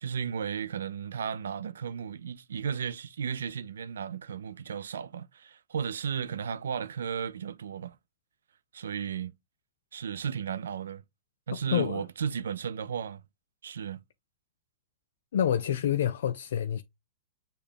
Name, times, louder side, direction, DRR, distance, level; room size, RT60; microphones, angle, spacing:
voice 1, 0.0-8.0 8.7-9.3 9.9-11.0 11.5-13.2 13.6-14.0, right 7 dB, 85° right, 0.3 m, -34 dB
voice 2, 11.5-12.1 15.3-16.8, left 9 dB, 75° left, 0.3 m, -28 dB
6.6 x 2.3 x 3.4 m
hypercardioid pair, 120°, 0 cm